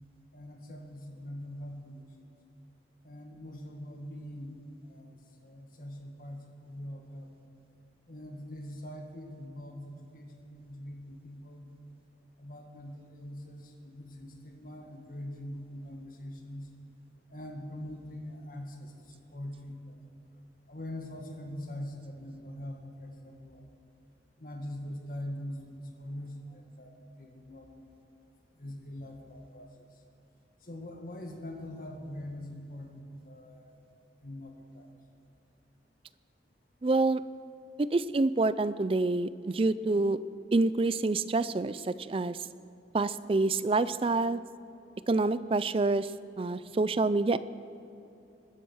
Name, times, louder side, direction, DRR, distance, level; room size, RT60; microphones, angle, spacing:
voice 1, 0.3-2.0 3.0-4.5 4.8-7.3 8.1-11.7 12.4-16.7 17.3-20.0 20.7-23.6 24.4-28.0 28.5-30.0 30.6-33.8 34.2-35.0 37.6-37.7 44.8-44.9, left 1 dB, 50° left, 2 dB, 1.9 m, -43 dB
voice 2, 36.8-37.2 37.8-40.2 40.5-42.4 42.9-44.4 45.1-46.1 46.4-47.4, right 3 dB, 30° right, 15 dB, 0.4 m, -27 dB
21.0 x 10.0 x 6.3 m, 2.8 s
head